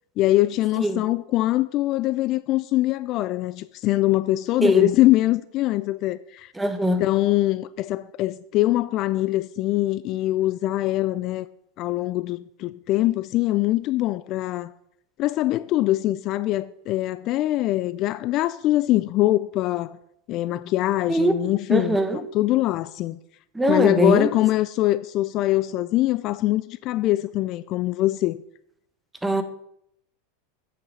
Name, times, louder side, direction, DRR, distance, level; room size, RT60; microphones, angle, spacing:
voice 1, 0.2-6.5 7.0-11.5 11.8-14.7 15.2-19.9 20.3-23.2 23.7-28.4, left 16 dB, 50° left, 0.3 m, -23 dB
voice 2, 6.6-7.0 21.1-21.3 21.7-22.2 23.5-24.3 29.2-29.4, right 1 dB, 10° right, 1.1 m, -21 dB
8.3 x 5.9 x 5.5 m
hypercardioid pair, 100°, 0 cm